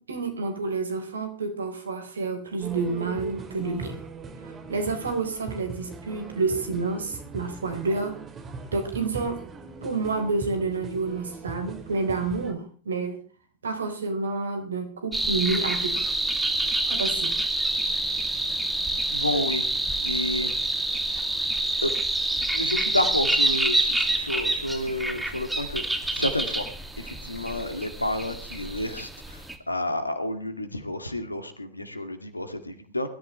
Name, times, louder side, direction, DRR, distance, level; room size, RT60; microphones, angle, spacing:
voice 1, 0.0-4.0 4.4-8.2 8.7-9.4 9.8-13.2 13.6-16.1 16.9-17.4, right 3 dB, 70° right, 6 dB, 4.1 m, -29 dB
sound 1, 2.6-12.5, right 4 dB, 25° right, 2.8 m, -40 dB
sound 2, 15.1-29.5, right 1 dB, 5° right, 2.2 m, -27 dB
voice 2, 19.1-20.6 21.1-21.4 21.8-21.9 22.5-26.7 27.0-33.1, left 1 dB, 85° left, 9 dB, 2.2 m, -30 dB
22.0 x 13.5 x 3.3 m, 0.38 s
figure-of-eight pair, 90°, 0 cm